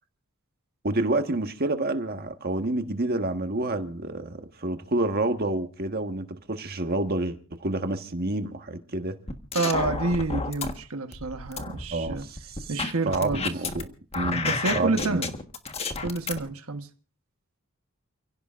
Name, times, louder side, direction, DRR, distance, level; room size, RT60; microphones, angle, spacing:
voice 1, 0.8-9.2 11.9-12.7 13.0-14.5 14.7-15.3, right 2 dB, 45° right, 1.5 m, -28 dB
sound 1, 9.3-10.7 11.1-13.8 14.1-16.4, left 3 dB, 30° left, 1.4 m, -30 dB
voice 2, 9.5-12.3 12.7-13.5 14.4-15.3 16.0-16.9, right 3 dB, 90° right, 1.2 m, -28 dB
29.0 x 16.5 x 2.5 m
head